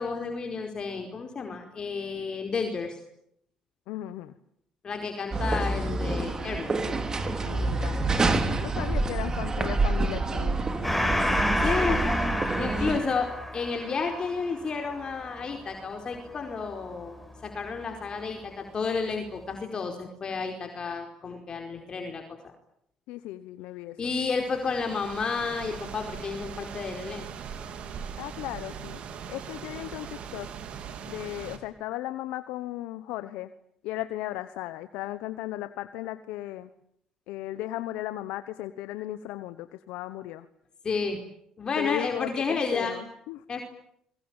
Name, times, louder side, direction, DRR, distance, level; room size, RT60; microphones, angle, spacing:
voice 1, 0.0-3.0 4.8-6.7 11.6-12.0 12.6-17.1 17.4-22.2 24.0-27.2 40.8-41.2 41.6-43.0 43.5-43.6, left 4 dB, 40° left, 4 dB, 4.6 m, -31 dB
voice 2, 3.9-4.3 7.4-8.2 8.6-10.7 11.6-12.1 23.1-24.1 28.2-29.0 29.3-30.5 31.1-33.5 33.8-36.7 37.3-40.5 41.7-43.4, left 15 dB, 85° left, 12 dB, 1.2 m, -36 dB
sound 1, 5.3-13.0, right 3 dB, 30° right, 3.9 m, -27 dB
Gong, 10.8-17.8, left 1 dB, 5° left, 5.0 m, -31 dB
sound 2, 24.4-31.6, right 7 dB, 65° right, 4.1 m, -40 dB
26.0 x 22.5 x 9.1 m, 0.72 s
supercardioid pair, 85°, 2 cm